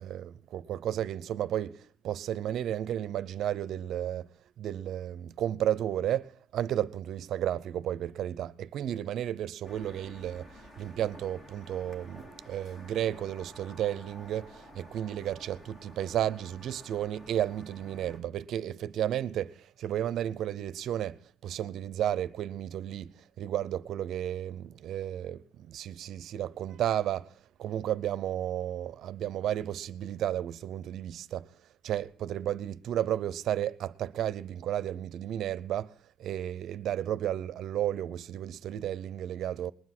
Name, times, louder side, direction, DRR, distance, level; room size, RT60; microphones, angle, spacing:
voice 1, 0.0-4.3 4.6-27.3 27.6-31.5 31.8-35.9 36.2-39.7, right 11 dB, 60° right, 0.6 m, -33 dB
sound 1, 9.6-18.2, equal, 25° left, 2.1 m, -51 dB
20.0 x 9.7 x 6.0 m
cardioid pair, 165°, 0 cm